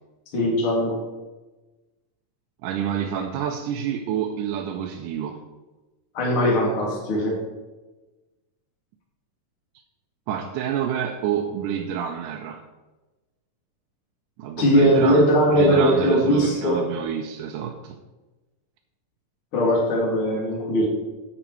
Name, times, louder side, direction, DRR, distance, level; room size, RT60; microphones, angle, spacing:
voice 1, 0.3-1.0 6.1-7.4 14.6-16.8 19.5-20.9, equal, 40° left, 2.9 m, -20 dB
voice 2, 2.6-5.4 10.3-12.6 14.4-18.0, right 9 dB, 80° right, 2.1 m, -28 dB
10.0 x 7.2 x 4.6 m
omnidirectional pair, 3.8 m